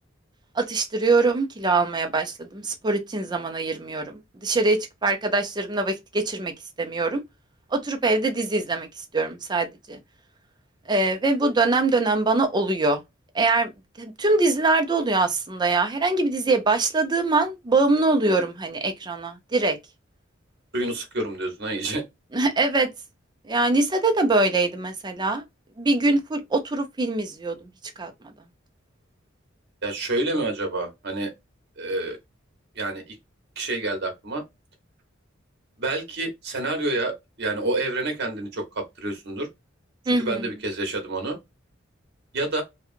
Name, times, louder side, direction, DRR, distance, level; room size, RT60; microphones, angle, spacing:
voice 1, 0.5-6.5 6.8-7.2 7.7-8.9 9.1-10.0 10.9-13.0 13.3-13.7 14.0-19.8 22.3-22.9 23.4-25.4 25.8-27.7 28.0-28.1 40.1-40.4, right 3 dB, 20° right, 0.6 m, -23 dB
voice 2, 20.7-22.0 29.8-31.3 31.8-32.2 32.8-33.2 33.6-34.4 35.8-39.5 40.2-41.4 42.3-42.6, right 2 dB, 60° right, 0.9 m, -28 dB
2.8 x 2.3 x 2.5 m
head